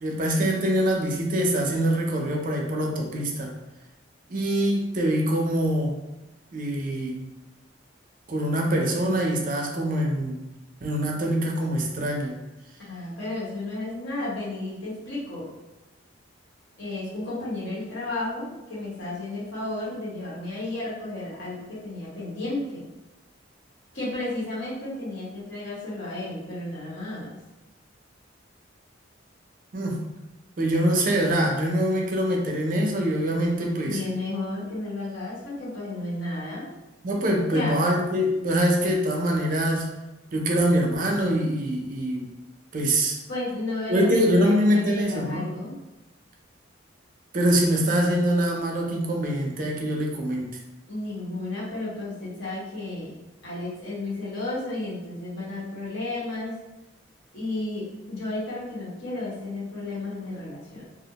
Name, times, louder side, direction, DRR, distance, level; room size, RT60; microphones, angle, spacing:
voice 1, 0.0-3.5 4.3-6.0 6.5-7.2 8.3-10.4 10.8-12.3 29.7-30.0 30.6-34.0 37.0-39.9 40.3-42.3 42.7-43.2 43.9-45.5 47.3-50.5, equal, 45° right, 0 dB, 0.4 m, -24 dB
voice 2, 12.9-15.5 16.8-22.9 23.9-27.4 33.8-36.7 37.5-37.8 43.3-45.8 50.9-53.2 53.4-56.6 57.3-60.8, left 2 dB, 70° left, -7 dB, 1.0 m, -33 dB
2.3 x 2.1 x 2.8 m, 1.0 s
head